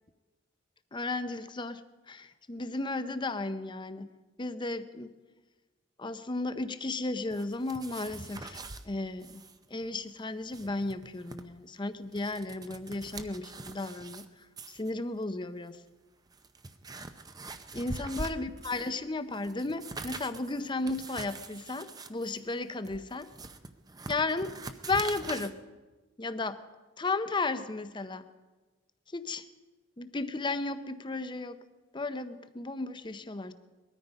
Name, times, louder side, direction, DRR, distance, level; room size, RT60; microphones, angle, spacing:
voice 1, 0.9-1.8 2.1-4.1 4.4-5.1 6.0-9.4 9.7-14.3 14.7-15.8 17.7-23.3 24.1-24.6 24.9-25.6 26.2-26.6 27.0-28.2 29.1-29.4 30.0-31.6 31.9-33.5, left 3 dB, 25° left, 11 dB, 0.7 m, -34 dB
sound 1, 7.3-8.8 9.2-9.6 9.8-9.9 10.3-11.4 11.9-14.3 14.6-14.9 15.7-15.8 16.3-19.0 19.3-25.5, right 3 dB, 20° right, 0.6 m, -43 dB
20.5 x 13.5 x 5.3 m, 1.3 s
head